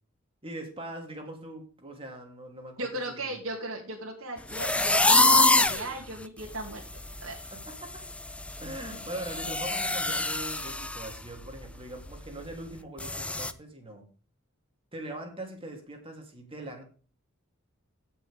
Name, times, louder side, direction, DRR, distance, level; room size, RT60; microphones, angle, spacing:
voice 1, 0.4-3.3 7.5-7.9 8.6-14.1 14.9-16.8, right 1 dB, 25° right, 2 dB, 3.1 m, -41 dB
voice 2, 2.8-6.8 7.2-7.4, right 2 dB, 65° right, -1 dB, 2.4 m, -36 dB
sound 1, 4.5-5.9 6.4-6.5 6.9-7.2 7.4-11.1 11.5-11.6 12.1-12.2 13.0-13.5, left 2 dB, 5° left, 0.6 m, -25 dB
16.5 x 6.1 x 3.5 m, 0.39 s
head